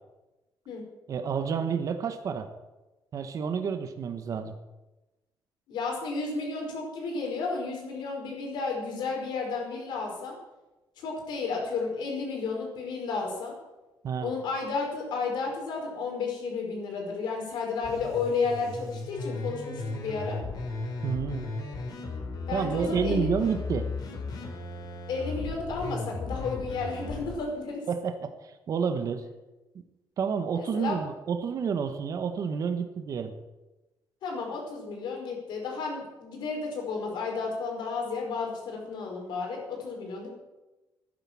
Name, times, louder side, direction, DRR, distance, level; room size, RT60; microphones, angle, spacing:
voice 1, 1.1-2.5 3.1-4.5 14.0-14.3 21.0-21.5 22.5-23.9 27.9-28.3 28.7-29.2 30.2-33.3, right 6 dB, 45° right, 7 dB, 1.2 m, -29 dB
voice 2, 5.7-10.3 11.0-13.5 14.2-20.4 22.5-23.3 25.1-27.8 30.5-31.0 34.2-40.3, left 4 dB, 75° left, 0 dB, 5.0 m, -32 dB
sound 1, 17.8-27.3, left 3 dB, 60° left, 3.1 m, -36 dB
12.0 x 10.5 x 7.4 m, 1.1 s
cardioid pair, 145°, 8 cm